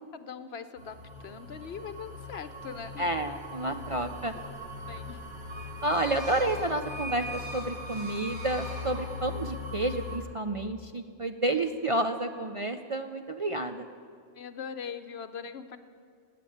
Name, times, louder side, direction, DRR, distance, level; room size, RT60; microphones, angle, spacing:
voice 1, 0.1-3.1 3.9-4.0 4.9-5.2 14.3-15.8, left 6 dB, 65° left, 11 dB, 1.0 m, -41 dB
sound 1, 0.8-10.2, left 3 dB, 65° right, 2.8 m, -41 dB
voice 2, 3.0-4.3 5.8-13.9, right 2 dB, 40° right, 7 dB, 0.5 m, -30 dB
sound 2, 5.5-9.6, equal, 25° right, 1.9 m, -42 dB
19.5 x 8.5 x 8.5 m, 2.4 s
omnidirectional pair, 1.1 m